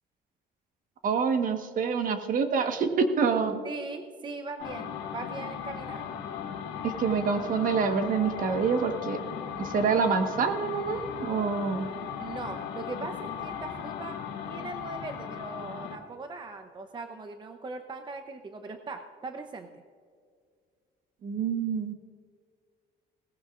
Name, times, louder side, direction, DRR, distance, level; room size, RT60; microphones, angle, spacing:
voice 1, 1.0-3.6 6.8-9.2 9.6-11.9 21.2-21.9, right 5 dB, 55° right, 6 dB, 1.4 m, -26 dB
voice 2, 3.6-6.1 12.2-14.2 14.5-19.8, right 3 dB, 30° right, 6 dB, 0.8 m, -40 dB
sound 1, 4.6-16.1, left 8 dB, 80° left, 1.7 m, -37 dB
18.0 x 15.5 x 2.5 m, 2.1 s
cardioid pair, 110°, 17 cm